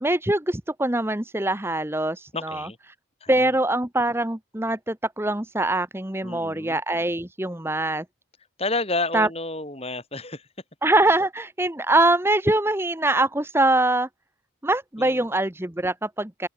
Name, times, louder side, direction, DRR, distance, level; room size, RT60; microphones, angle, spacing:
voice 1, 0.0-2.7 3.3-8.0 9.1-9.3 10.8-14.1 14.6-16.5, right 2 dB, 10° right, 1.0 m, -23 dB
voice 2, 2.3-2.8 3.2-3.5 6.2-6.8 8.6-10.5 15.0-15.2, left 2 dB, 30° left, 7.8 m, -30 dB
open air
head